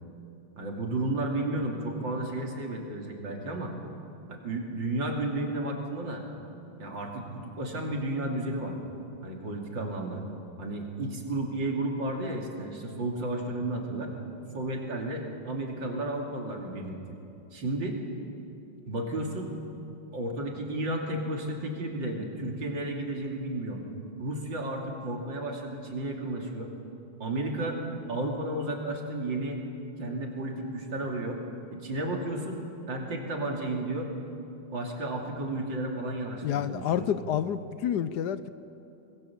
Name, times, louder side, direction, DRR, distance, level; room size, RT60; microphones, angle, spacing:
voice 1, 0.6-3.7 4.3-6.2 6.8-8.8 9.2-10.2 10.6-14.1 14.5-17.0 17.5-18.0 18.9-19.5 20.1-23.8 24.2-26.7 27.2-27.8 28.1-29.6 30.0-31.4 31.7-32.6 32.9-34.1 34.7-37.1, right 1 dB, 75° right, 1 dB, 3.5 m, -32 dB
voice 2, 36.4-38.5, left 9 dB, 70° left, 14 dB, 1.2 m, -29 dB
25.5 x 21.0 x 7.3 m, 2.8 s
omnidirectional pair, 2.0 m